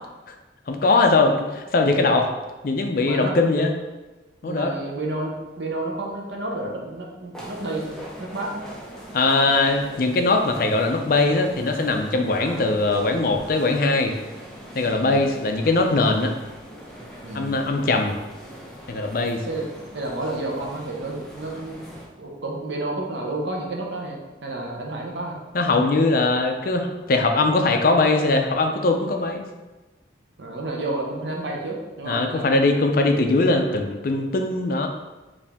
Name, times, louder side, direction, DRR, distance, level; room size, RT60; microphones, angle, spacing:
voice 1, 0.7-2.3 2.6-3.7 4.4-4.7 9.1-14.2 14.7-16.3 17.3-18.2 18.9-19.4 25.5-29.5 32.1-34.9, left 3 dB, 50° left, 4 dB, 0.4 m, -21 dB
voice 2, 3.0-3.3 4.4-8.6 12.4-12.6 15.0-15.3 17.2-17.6 19.3-19.7 19.9-21.8 22.2-25.4 30.4-32.5, right 2 dB, 75° right, -1 dB, 0.8 m, -31 dB
sound 1, 7.3-22.1, equal, 5° left, 0.6 m, -41 dB
4.8 x 2.7 x 3.4 m, 1.2 s
head